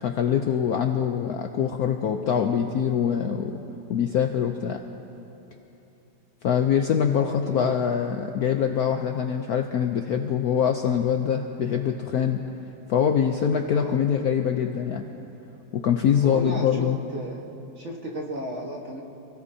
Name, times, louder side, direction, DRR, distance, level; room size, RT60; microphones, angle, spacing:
voice 1, 0.0-3.6 3.9-4.8 6.4-12.4 12.9-15.0 15.7-17.0, left 8 dB, 65° left, 4 dB, 0.9 m, -24 dB
voice 2, 7.2-7.8 13.7-14.0 16.2-16.9 17.1-17.4 17.8-19.0, equal, 40° right, -2 dB, 1.7 m, -34 dB
28.5 x 16.5 x 2.8 m, 3.0 s
omnidirectional pair, 2.1 m